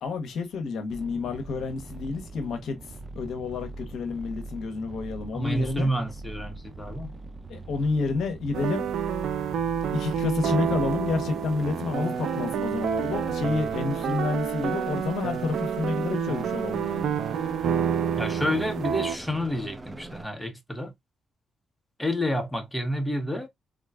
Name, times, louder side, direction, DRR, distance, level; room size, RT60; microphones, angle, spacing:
voice 1, 0.0-2.8 3.1-5.9 7.5-8.9 9.9-17.1, left 4 dB, 75° left, 0.8 m, -29 dB
sound 1, 0.9-20.2, right 2 dB, 25° right, 0.8 m, -42 dB
voice 2, 5.3-7.1 18.2-20.9 22.0-23.5, equal, 10° left, 0.9 m, -29 dB
sound 2, 8.5-19.2, right 8 dB, 75° right, 0.5 m, -29 dB
3.7 x 2.2 x 2.3 m
supercardioid pair, 50°, 0 cm